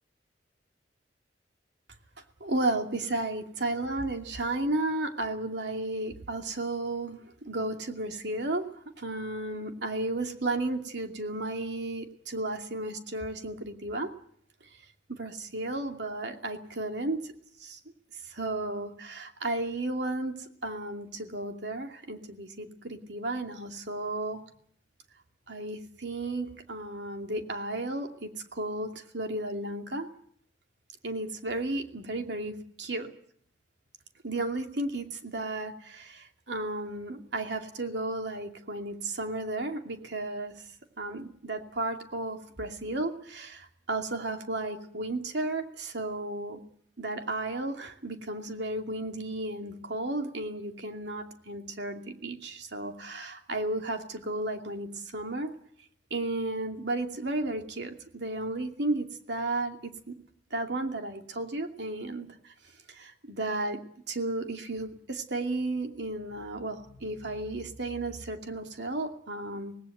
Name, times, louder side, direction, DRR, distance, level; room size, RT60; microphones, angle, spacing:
voice 1, 2.4-8.7 9.0-14.1 15.1-17.3 17.6-17.8 18.3-20.3 20.6-24.4 25.5-30.1 31.0-32.5 32.8-33.1 34.2-40.5 41.0-46.6 47.0-55.5 56.1-60.2 60.5-62.5 62.9-63.8 64.1-69.7, right 2 dB, 75° right, 4 dB, 2.6 m, -33 dB
25.5 x 19.0 x 7.9 m, 0.64 s
head